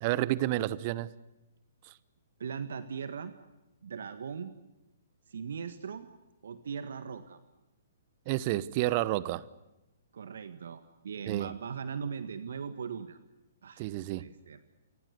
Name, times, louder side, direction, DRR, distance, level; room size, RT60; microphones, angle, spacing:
voice 1, 0.0-1.1 8.3-9.4 11.3-11.5 13.8-14.3, right 16 dB, 35° right, 19 dB, 1.1 m, -30 dB
voice 2, 2.4-3.3 3.8-4.5 5.3-6.1 6.4-7.4 10.1-13.2 13.6-13.9 14.1-14.6, right 6 dB, 60° right, 11 dB, 1.7 m, -39 dB
29.5 x 24.5 x 6.7 m, 0.98 s
figure-of-eight pair, 120°, 0 cm